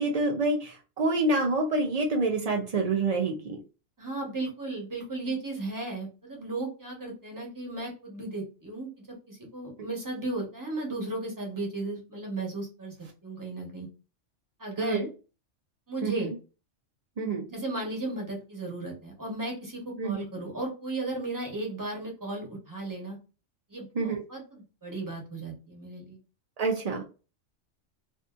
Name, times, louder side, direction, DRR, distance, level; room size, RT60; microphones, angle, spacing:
voice 1, 0.0-3.6 14.8-15.0 16.0-16.3 17.2-17.4 20.0-20.2 24.0-24.2 26.6-27.0, right 3 dB, 70° right, 1 dB, 0.3 m, -27 dB
voice 2, 4.0-13.0 13.2-13.9 14.6-15.1 15.9-16.3 17.5-23.2 23.7-26.2, right 2 dB, 15° right, -1 dB, 0.9 m, -35 dB
2.6 x 2.6 x 2.3 m, 0.33 s
omnidirectional pair, 1.3 m